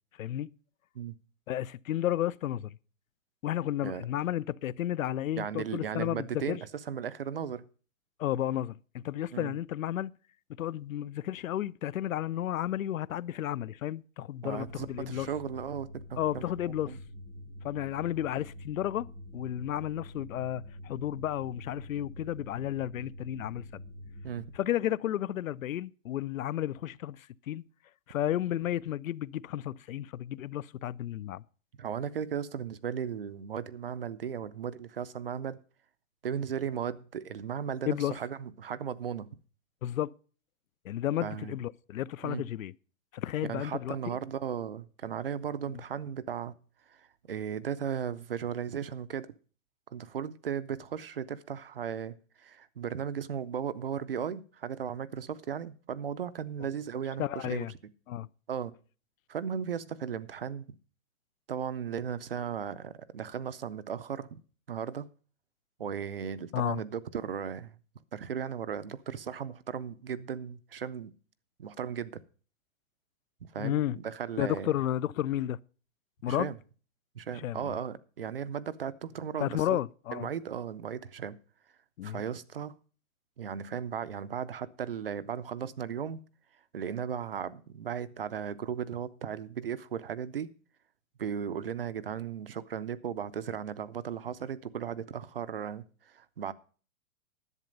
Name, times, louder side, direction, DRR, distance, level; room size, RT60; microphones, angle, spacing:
voice 1, 0.2-0.5 1.5-2.8 3.4-6.6 8.2-10.1 10.6-15.3 16.2-17.0 17.6-19.1 19.3-23.8 24.5-27.6 28.1-31.4 37.9-38.1 39.8-40.1 40.8-42.7 43.1-44.2 57.2-57.7 58.1-58.3 66.5-66.8 73.6-74.0 74.4-75.6 76.2-76.5 77.3-77.7 79.4-80.3 82.0-82.2, left 12 dB, 75° left, 0.5 m, -32 dB
voice 2, 5.4-6.6 6.9-7.6 9.3-9.5 14.4-16.4 16.9-17.0 24.2-24.4 31.8-35.6 36.2-39.3 41.2-41.6 42.2-42.4 43.4-46.5 46.9-49.3 49.9-52.1 52.4-57.7 58.5-58.7 59.3-60.7 61.5-64.4 64.7-65.1 65.8-67.8 68.1-71.1 71.6-72.2 73.5-74.7 76.3-76.6 77.1-79.8 80.1-81.4 82.0-82.7 83.4-86.2 86.7-90.5 91.2-96.5, right 8 dB, 45° right, 0.5 m, -36 dB
sound 1, 14.5-24.6, left 1 dB, ahead, 0.8 m, -46 dB
11.0 x 7.9 x 5.2 m
hypercardioid pair, 180°, 41 cm